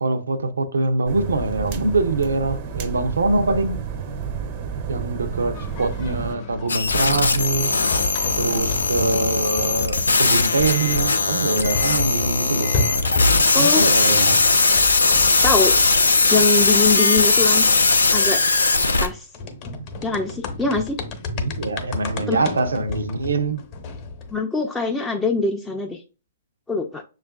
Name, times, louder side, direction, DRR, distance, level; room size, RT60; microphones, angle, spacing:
voice 1, 0.0-3.8 4.9-7.7 8.4-12.7 13.6-14.4 21.3-23.6, right 3 dB, 85° right, 0.6 m, -24 dB
sound 1, 1.1-6.4, right 6 dB, 40° right, 0.5 m, -30 dB
sound 2, 5.5-13.5 13.8-24.4, left 3 dB, 40° left, 0.8 m, -32 dB
sound 3, 6.7-19.1, left 3 dB, 90° left, 0.5 m, -19 dB
voice 2, 13.5-13.9 15.4-15.7 16.3-17.6 18.1-18.4 19.0-19.3 20.0-21.0 22.3-22.4 24.3-26.0 26.7-27.0, left 3 dB, 10° left, 0.4 m, -23 dB
6.2 x 2.4 x 2.3 m
hypercardioid pair, 125°, 0 cm